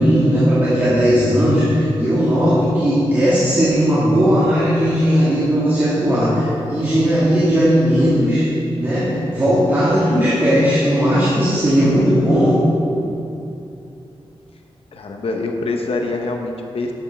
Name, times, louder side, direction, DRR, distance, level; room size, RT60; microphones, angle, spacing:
voice 1, 0.0-8.5 8.8-12.6, equal, 20° right, -11 dB, 1.9 m, -16 dB
voice 2, 14.9-16.9, left 3 dB, 70° left, 3 dB, 0.8 m, -24 dB
10.5 x 8.0 x 3.4 m, 2.8 s
wide cardioid pair, 120°, 10 cm